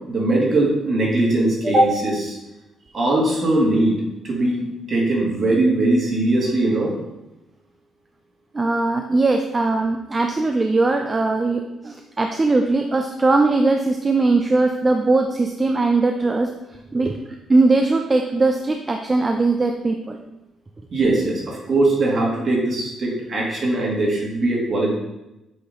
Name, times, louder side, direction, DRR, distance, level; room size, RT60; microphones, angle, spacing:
voice 1, 0.1-2.4 2.9-4.0 4.2-6.9 20.9-24.9, right 2 dB, 45° right, -2 dB, 1.9 m, -20 dB
voice 2, 8.5-16.5 16.9-17.2 17.5-20.2, right 3 dB, 25° right, 4 dB, 0.4 m, -20 dB
8.1 x 3.0 x 3.9 m, 0.96 s
cardioid pair, 90°, 0 cm